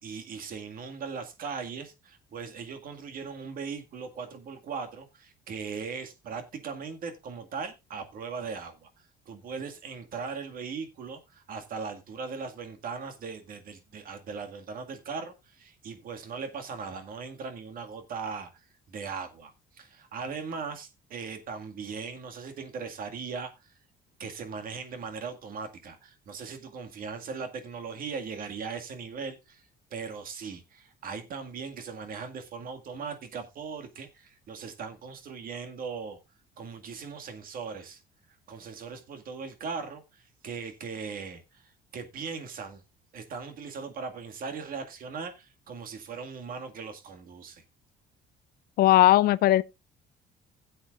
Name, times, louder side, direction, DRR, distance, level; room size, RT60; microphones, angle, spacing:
voice 1, 0.0-23.8 24.2-36.2 36.6-38.0 38.5-42.8 43.1-47.6, right 5 dB, 55° right, 1.9 m, -39 dB
voice 2, 48.8-49.6, left 14 dB, 65° left, 0.5 m, -18 dB
16.5 x 7.9 x 2.4 m
cardioid pair, 110°, 17 cm